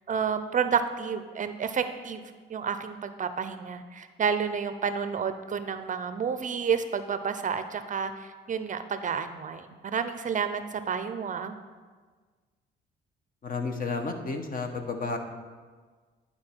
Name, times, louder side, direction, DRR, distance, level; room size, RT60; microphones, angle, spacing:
voice 1, 0.1-2.2 2.5-11.5, right 6 dB, 40° right, 10 dB, 0.5 m, -30 dB
voice 2, 13.4-15.2, left 4 dB, 45° left, 5 dB, 1.0 m, -32 dB
10.5 x 4.3 x 4.4 m, 1.5 s
cardioid pair, 90°, 20 cm